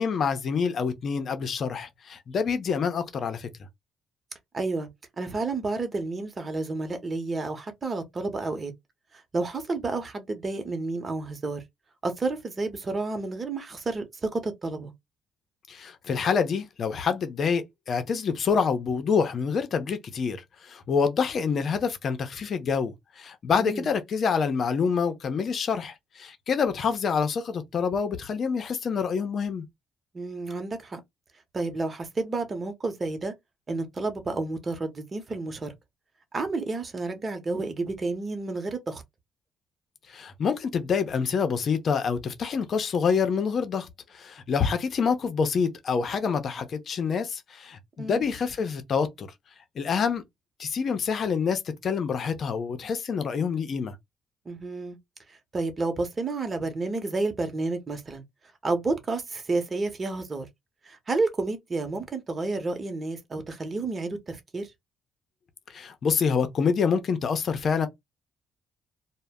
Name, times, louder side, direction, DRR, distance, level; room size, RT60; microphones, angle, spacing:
voice 1, 0.0-3.5 15.7-29.6 40.1-43.9 44.1-49.3 49.8-50.2 50.6-54.0 65.7-67.9, left 6 dB, 55° left, 0.6 m, -27 dB
voice 2, 4.5-4.9 5.2-8.7 9.1-11.6 12.0-14.9 23.5-23.9 30.1-31.0 31.5-33.3 33.7-35.7 36.3-39.0 48.0-48.2 54.5-55.0 55.3-58.2 58.6-60.5 60.8-64.7, right 3 dB, 35° right, 0.9 m, -30 dB
2.1 x 2.1 x 3.5 m
supercardioid pair, 65°, 0 cm